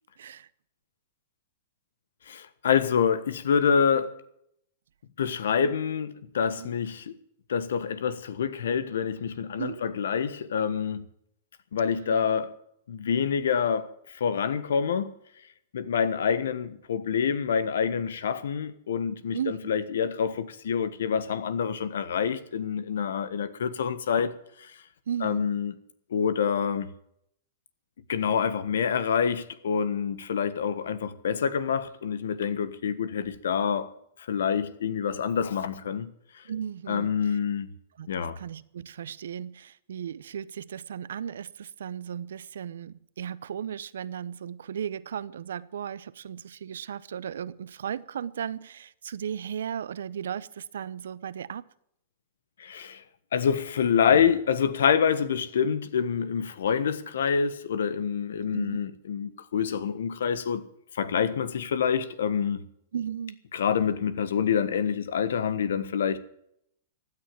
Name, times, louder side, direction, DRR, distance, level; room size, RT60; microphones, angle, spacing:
voice 1, 0.2-0.5 5.6-5.7 6.6-6.7 9.6-9.8 11.9-12.4 19.3-19.7 25.1-25.6 36.5-37.4 38.0-38.1 38.4-51.6 58.5-58.8 62.9-63.4, right 8 dB, 80° right, 0.8 m, -36 dB
voice 2, 2.3-4.1 5.2-7.1 7.5-11.1 11.7-12.5 12.9-13.9 14.2-15.1 15.7-24.3 25.2-25.7 26.1-26.9 28.1-33.9 34.3-36.1 36.9-37.7 38.1-38.4 52.6-53.0 53.3-60.6 61.0-62.7 63.5-66.2, left 7 dB, 80° left, 1.3 m, -27 dB
16.0 x 9.8 x 7.6 m
hypercardioid pair, 130°, 0 cm